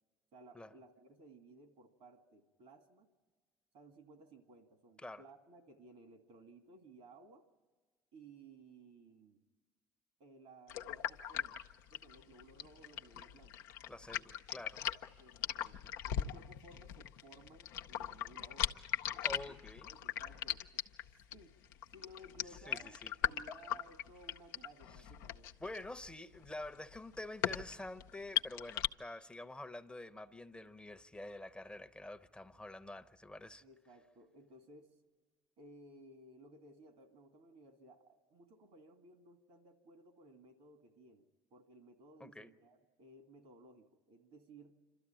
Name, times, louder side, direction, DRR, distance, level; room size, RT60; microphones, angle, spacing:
voice 1, 0.3-3.1 3.7-7.4 8.1-9.4 10.2-11.6 11.9-13.6 15.2-18.8 19.1-19.4 19.8-20.8 21.3-21.6 21.9-25.5 33.6-34.9 35.6-44.7, right 2 dB, 70° right, 2.4 m, -59 dB
sound 1, 10.7-28.9, left 10 dB, 80° left, 0.7 m, -39 dB
voice 2, 13.9-14.8 19.2-19.9 22.5-23.1 25.6-33.6 42.2-42.5, left 2 dB, 10° left, 0.8 m, -47 dB
27.5 x 13.0 x 9.0 m
hypercardioid pair, 60°, 10 cm